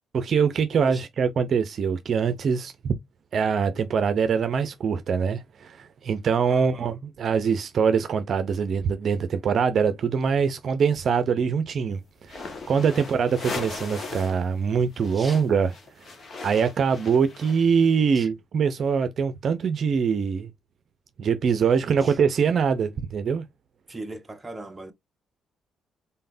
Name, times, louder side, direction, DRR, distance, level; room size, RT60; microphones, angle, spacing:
voice 1, 0.1-2.9 3.3-12.4 12.7-15.7 16.4-20.5 21.2-23.4, right 6 dB, 55° right, 0.6 m, -23 dB
voice 2, 6.5-7.0 12.9-13.4 15.1-15.4 18.1-18.3 22.0-22.2 23.9-24.9, right 2 dB, 15° right, 1.0 m, -40 dB
sound 1, 12.2-14.4 14.7-17.9, left 4 dB, 45° left, 1.4 m, -38 dB
4.1 x 3.7 x 2.6 m
cardioid pair, 90°, 0 cm